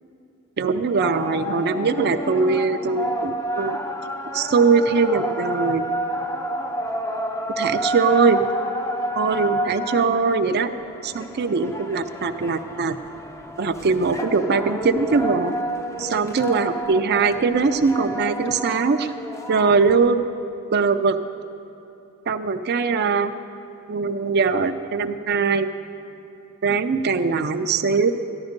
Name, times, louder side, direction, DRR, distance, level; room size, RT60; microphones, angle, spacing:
voice 1, 0.6-3.8 4.3-5.8 7.6-8.4 9.2-10.7 11.0-13.0 13.6-15.5 16.0-19.1 19.5-20.2 20.7-21.2 22.3-23.3 23.9-25.7 26.6-28.1, right 4 dB, 50° right, 8 dB, 0.5 m, -21 dB
sound 1, 1.0-20.1, equal, 15° left, 0.5 m, -30 dB
14.0 x 10.5 x 5.2 m, 2.9 s
head